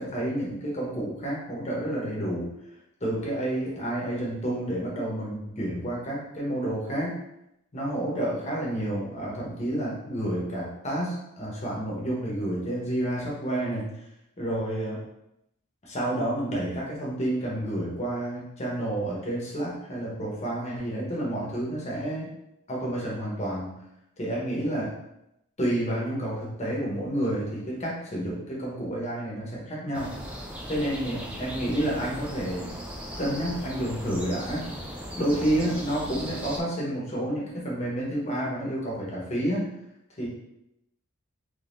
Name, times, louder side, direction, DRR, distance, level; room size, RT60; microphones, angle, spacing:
voice 1, 0.0-2.5 3.0-7.2 7.7-13.9 14.4-15.0 15.8-22.3 22.7-23.7 24.2-24.9 25.6-30.1 30.7-32.7 33.2-34.6 35.2-39.7 40.2-40.3, right 1 dB, 30° left, -4 dB, 1.0 m, -30 dB
sound 1, 29.9-36.6, equal, 5° right, 0.3 m, -38 dB
3.6 x 3.4 x 2.5 m, 0.83 s
head